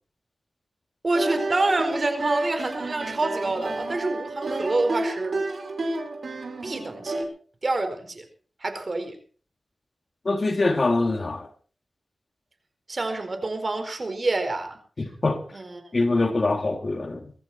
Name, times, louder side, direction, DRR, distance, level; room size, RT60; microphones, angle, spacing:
voice 1, 1.0-5.4 6.6-7.3 7.6-8.2 8.6-9.2 12.9-14.8 15.5-15.8, right 2 dB, 45° right, 4.6 m, -27 dB
sound 1, 1.1-7.2, right 2 dB, 65° right, 5.2 m, -30 dB
voice 2, 10.2-11.5 15.0-15.4 15.9-17.3, left 2 dB, 45° left, 2.7 m, -24 dB
23.0 x 14.0 x 4.3 m
wide cardioid pair, 75°, 0 cm